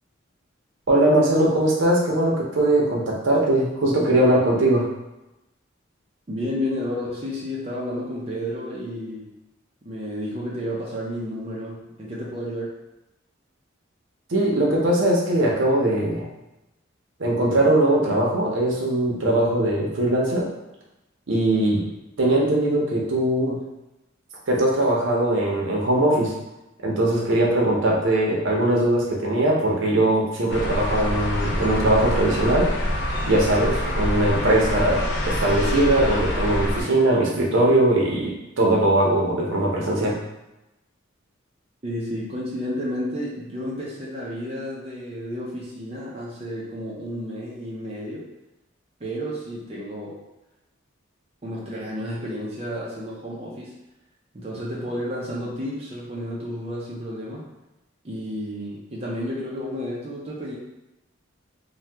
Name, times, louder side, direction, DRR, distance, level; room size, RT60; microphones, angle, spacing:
voice 1, 0.9-4.9 14.3-16.3 17.2-20.5 21.3-21.8 22.2-23.6 24.5-26.3 26.8-32.7 33.2-40.1, right 1 dB, 75° right, -3 dB, 0.7 m, -20 dB
voice 2, 6.3-9.3 9.8-12.8 21.6-21.9 41.8-48.3 49.0-50.2 51.4-53.8 54.3-57.4 58.0-60.6, equal, 30° right, -5 dB, 0.5 m, -31 dB
sound 1, 30.5-36.8, left 1 dB, 60° left, 0.5 m, -26 dB
2.8 x 2.2 x 3.3 m, 0.97 s
head